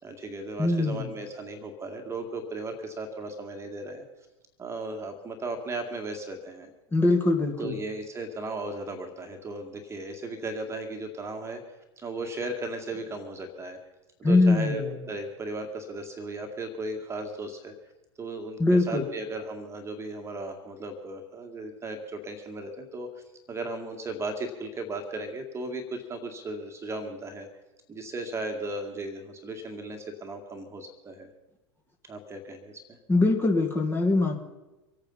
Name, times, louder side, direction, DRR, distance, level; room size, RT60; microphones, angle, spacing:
voice 1, 0.0-4.0 4.6-6.7 7.6-11.6 12.0-13.8 14.2-17.7 18.2-27.5 27.9-31.3 32.1-33.0, right 2 dB, 20° right, 4 dB, 2.0 m, -36 dB
voice 2, 0.6-1.1 6.9-7.7 14.2-14.9 18.6-19.0 33.1-34.4, left 2 dB, 15° left, 2 dB, 2.2 m, -22 dB
24.5 x 9.1 x 5.7 m, 1.1 s
figure-of-eight pair, 85°, 15 cm